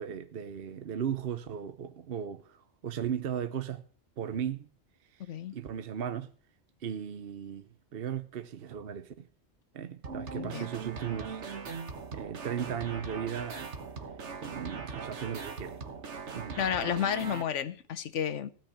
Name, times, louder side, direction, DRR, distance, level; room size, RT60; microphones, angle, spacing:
voice 1, 0.0-3.8 4.2-4.7 5.5-6.3 6.8-9.3 9.7-11.4 12.1-13.7 14.4-15.8 16.3-16.7, right 8 dB, 55° right, 1.0 m, -36 dB
sound 1, 10.0-17.4, right 5 dB, 75° right, 1.6 m, -40 dB
voice 2, 10.4-10.7 16.6-18.5, left 8 dB, 85° left, 1.2 m, -31 dB
16.0 x 6.0 x 8.6 m
omnidirectional pair, 1.2 m